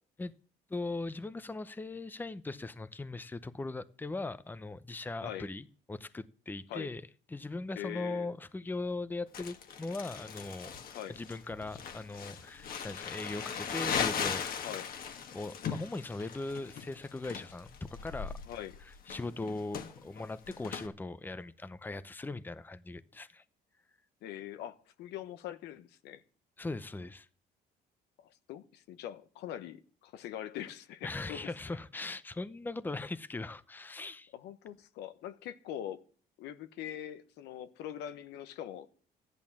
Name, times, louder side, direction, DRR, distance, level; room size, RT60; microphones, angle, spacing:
voice 1, 0.7-7.0 7.3-10.7 11.1-14.7 15.3-18.3 19.1-23.4 26.6-27.3 31.0-34.3, left 2 dB, 10° left, 0.8 m, -39 dB
voice 2, 5.2-5.5 6.7-6.9 7.8-8.3 10.9-11.2 14.6-14.9 18.5-18.7 24.2-26.2 28.2-31.5 34.3-36.0 36.4-38.9, left 11 dB, 85° left, 1.2 m, -43 dB
Crumpling crinkling, 9.3-20.9, left 7 dB, 60° left, 1.8 m, -38 dB
14.5 x 11.0 x 7.3 m
cardioid pair, 110°, 17 cm